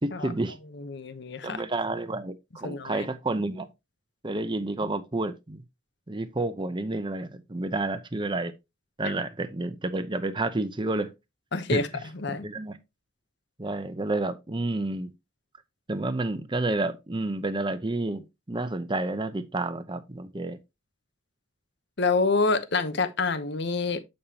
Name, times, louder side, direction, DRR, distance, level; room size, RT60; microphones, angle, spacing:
voice 1, 0.0-0.5 1.4-3.7 4.2-5.6 6.1-8.5 9.0-11.1 11.7-11.8 12.3-12.8 13.6-15.1 15.9-20.6, right 2 dB, 25° right, 0.7 m, -30 dB
voice 2, 0.7-1.6 2.6-3.1 4.8-4.9 11.5-11.9 12.1-12.5 22.0-24.0, left 3 dB, 60° left, 0.9 m, -27 dB
8.5 x 5.4 x 2.9 m
head